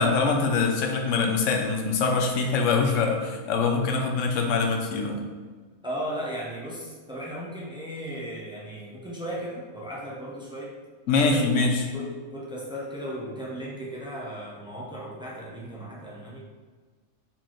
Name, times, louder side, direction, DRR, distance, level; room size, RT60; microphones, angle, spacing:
voice 1, 0.0-5.2 11.1-11.8, left 4 dB, 65° left, 3 dB, 0.9 m, -24 dB
voice 2, 5.8-10.8 11.2-11.6 11.9-16.4, equal, 5° right, -5 dB, 0.6 m, -36 dB
4.4 x 4.0 x 3.0 m, 1.4 s
omnidirectional pair, 1.5 m